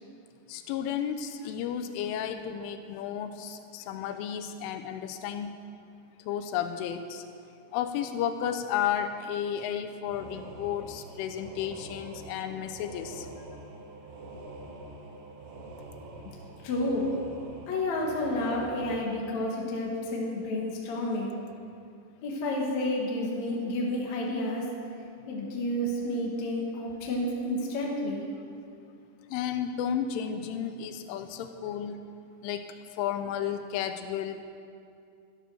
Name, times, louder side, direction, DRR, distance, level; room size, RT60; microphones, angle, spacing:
voice 1, 0.5-5.6 6.3-7.2 7.7-13.3 29.3-32.0 32.4-34.4, left 9 dB, 80° left, 8 dB, 3.1 m, -33 dB
sound 1, 10.1-19.0, right 2 dB, 90° right, 4.1 m, -45 dB
voice 2, 16.6-17.1 17.7-21.3 22.2-24.7 25.3-28.2, left 1 dB, 60° left, -2 dB, 1.9 m, -30 dB
14.0 x 12.0 x 6.3 m, 2.5 s
omnidirectional pair, 5.8 m